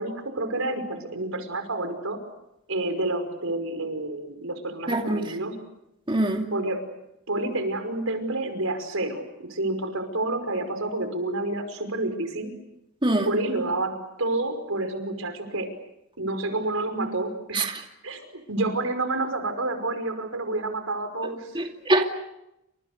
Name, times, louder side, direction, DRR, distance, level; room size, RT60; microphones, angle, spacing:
voice 1, 0.0-2.2 2.7-5.6 6.5-6.9 7.3-12.5 13.2-15.8 16.2-17.7 18.0-21.7, right 2 dB, 90° right, 7 dB, 5.5 m, -29 dB
voice 2, 4.9-5.2 6.1-6.5 13.0-13.3 17.5-17.7 21.5-22.1, right 1 dB, 25° right, 2 dB, 2.6 m, -23 dB
29.5 x 27.5 x 6.7 m, 0.85 s
head